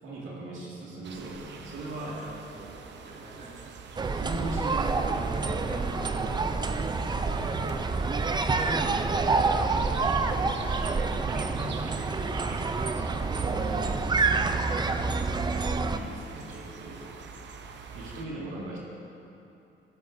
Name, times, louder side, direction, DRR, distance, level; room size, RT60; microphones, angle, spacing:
voice 1, 0.0-2.2 4.1-7.1 8.4-9.2 11.3-11.9 13.4-14.0 15.7-17.1 17.8-18.8, right 2 dB, 85° right, -5 dB, 2.1 m, -39 dB
sound 1, 1.0-18.2, right 5 dB, 65° right, 0.8 m, -46 dB
voice 2, 2.0-3.6 6.7-6.8 7.0-8.1 9.6-10.8 11.8-13.1 17.1-17.2, right 2 dB, 45° right, -4 dB, 1.9 m, -47 dB
sound 2, 4.0-16.0, right 4 dB, 20° right, 0.5 m, -27 dB
16.5 x 7.9 x 2.7 m, 2.8 s
cardioid pair, 90°, 20 cm